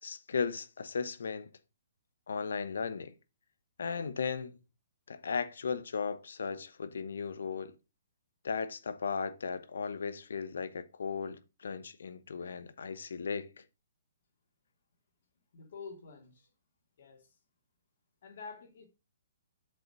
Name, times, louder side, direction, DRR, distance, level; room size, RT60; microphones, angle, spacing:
voice 1, 0.0-1.5 2.3-3.1 3.8-4.6 5.1-7.8 8.4-13.6, left 5 dB, 80° left, 1.0 m, -36 dB
voice 2, 15.5-16.5 17.0-17.4 18.2-18.9, left 4 dB, 60° left, 2.8 m, -48 dB
7.7 x 4.1 x 6.0 m
hypercardioid pair, 155°, 0 cm